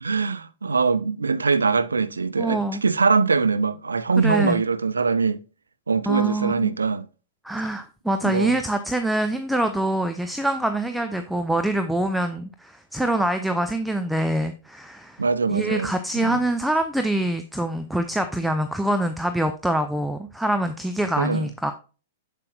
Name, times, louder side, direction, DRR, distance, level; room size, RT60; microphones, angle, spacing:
voice 1, 0.0-5.4 5.9-7.1 8.2-8.6 15.2-16.4 21.2-21.5, right 4 dB, 80° right, 0.5 m, -23 dB
voice 2, 2.4-2.8 4.2-4.6 6.1-6.8 7.4-15.2 15.5-21.7, right 1 dB, ahead, 0.6 m, -25 dB
7.6 x 7.4 x 2.4 m
figure-of-eight pair, 105°, 0 cm